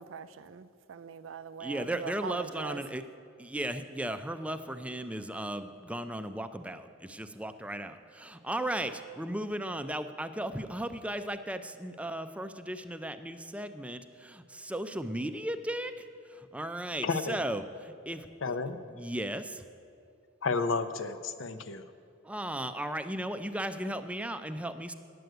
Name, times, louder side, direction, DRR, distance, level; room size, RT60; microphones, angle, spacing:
voice 1, 0.0-2.8, right 7 dB, 80° right, 13 dB, 0.5 m, -42 dB
voice 2, 1.6-3.0 3.4-15.9 16.3-18.3 18.9-19.6 22.2-24.9, right 1 dB, 5° right, 10 dB, 0.4 m, -36 dB
voice 3, 17.0-17.4 18.4-18.8 20.4-21.9, left 4 dB, 75° left, 11 dB, 0.6 m, -31 dB
9.3 x 7.7 x 9.1 m, 2.4 s
head